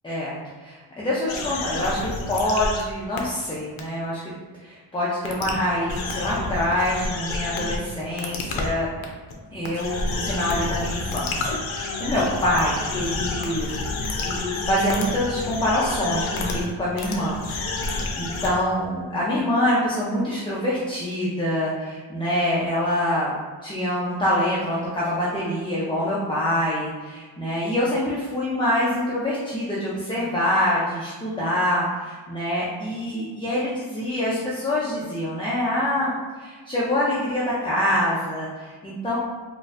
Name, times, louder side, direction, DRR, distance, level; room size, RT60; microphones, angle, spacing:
voice 1, 0.0-0.4 0.6-4.2 4.6-8.9 9.5-13.7 14.2-17.4 17.7-23.3 23.6-36.1 36.4-39.2, left 1 dB, 10° left, -7 dB, 0.4 m, -25 dB
sound 1, 1.3-2.8 3.2-3.3 3.8-3.9 5.3-5.5 5.9-7.8 8.2-8.7 9.0-9.3 9.6-16.7 17.0-18.5, left 3 dB, 80° left, 0.6 m, -29 dB
4.0 x 2.5 x 2.4 m, 1.4 s
wide cardioid pair, 155°, 47 cm